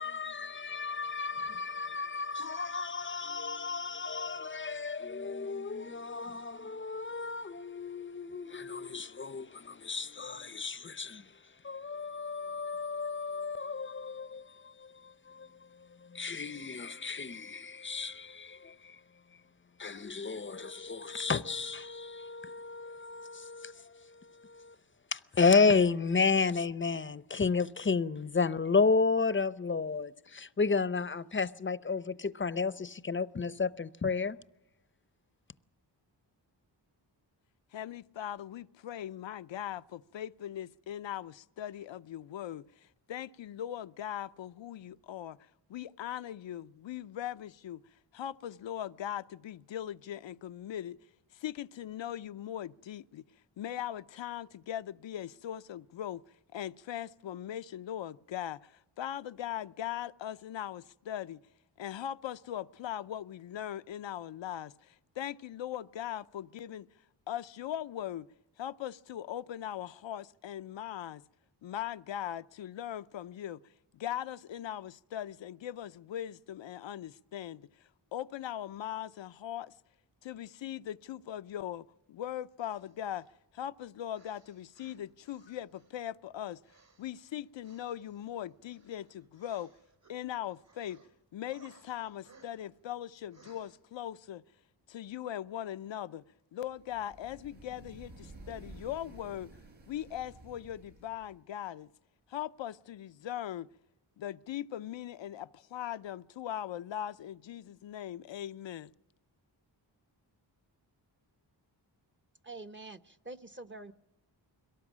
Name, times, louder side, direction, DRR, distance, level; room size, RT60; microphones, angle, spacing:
voice 1, 0.0-19.4 19.8-24.8 25.1-34.4, left 4 dB, 25° left, 0.7 m, -32 dB
voice 2, 37.7-42.6 43.1-45.4 45.7-47.8 48.1-51.0 51.3-53.2 53.6-56.2 56.5-61.4 61.8-66.9 67.3-68.3 68.6-71.2 71.6-73.6 73.9-77.7 78.1-79.7 80.2-83.2 83.5-86.6 87.0-89.7 90.1-91.0 91.3-94.4 94.9-96.2 96.5-99.5 99.9-101.9 102.3-103.7 104.2-108.9, left 11 dB, 80° left, 0.7 m, -40 dB
sound 1, 82.7-83.4 84.1-86.1 86.6-90.2 90.5-91.1 91.5-92.8 93.3-93.8, right 4 dB, 70° right, 6.0 m, -63 dB
sound 2, 96.7-101.4, right 2 dB, 90° right, 5.5 m, -52 dB
voice 3, 112.4-113.9, right 2 dB, 25° right, 0.8 m, -46 dB
22.5 x 18.0 x 7.4 m
cardioid pair, 70°, 44 cm